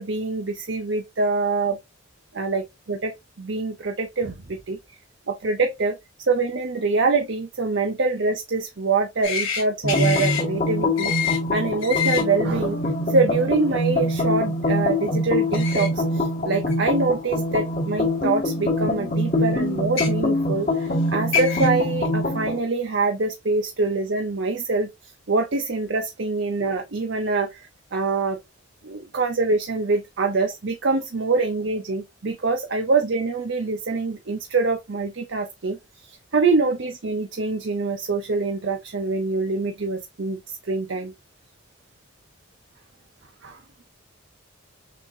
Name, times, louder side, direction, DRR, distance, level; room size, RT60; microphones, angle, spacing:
voice 1, 0.0-1.8 2.3-4.8 5.3-6.0 6.3-24.9 25.3-27.6 27.9-28.4 28.8-41.1 43.4-43.6, right 3 dB, 65° right, 0.7 m, -25 dB
sound 1, 9.2-9.6 9.9-10.4 11.0-11.4 11.8-12.2 15.5-15.9 16.7-16.8 18.0-18.1 19.8-20.1 21.0-21.1 21.3-21.7, left 7 dB, 80° left, 2.4 m, -25 dB
sound 2, 9.8-22.6, left 1 dB, 45° left, 1.5 m, -24 dB
6.9 x 2.9 x 2.6 m
head